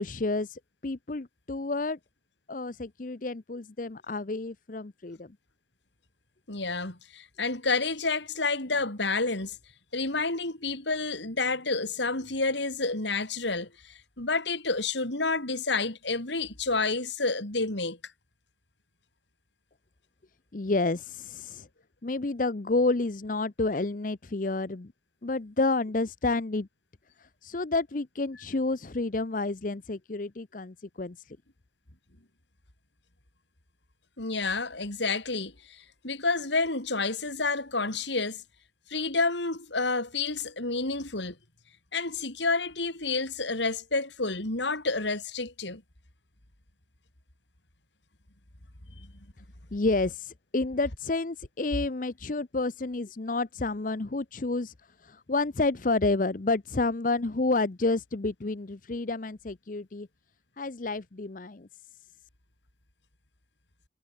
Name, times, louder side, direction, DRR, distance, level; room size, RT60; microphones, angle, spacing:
voice 1, 0.0-2.0 2.5-5.3 20.5-21.7 22.0-24.9 25.2-26.7 27.2-31.4 49.7-54.7 55.0-60.1 60.6-61.7, left 3 dB, 45° left, 0.7 m, -30 dB
voice 2, 6.5-9.6 9.9-18.0 34.2-38.4 38.9-41.4 41.9-45.8, left 3 dB, 70° left, 3.7 m, -29 dB
head